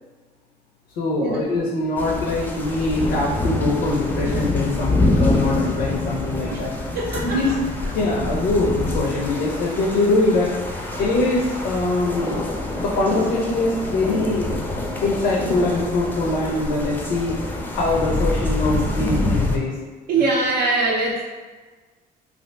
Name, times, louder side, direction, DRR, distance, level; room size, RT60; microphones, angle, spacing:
voice 1, 1.0-6.7 7.2-7.5 7.9-12.4 12.8-14.5 15.0-17.4 17.7-19.8, left 2 dB, 90° left, -4 dB, 0.6 m, -23 dB
sound 1, 2.0-19.6, left 2 dB, 10° left, 0.4 m, -26 dB
voice 2, 6.9-7.4 12.7-12.8 20.1-21.2, right 3 dB, 70° right, -3 dB, 0.4 m, -22 dB
2.7 x 2.4 x 3.3 m, 1.4 s
cardioid pair, 110°, 17 cm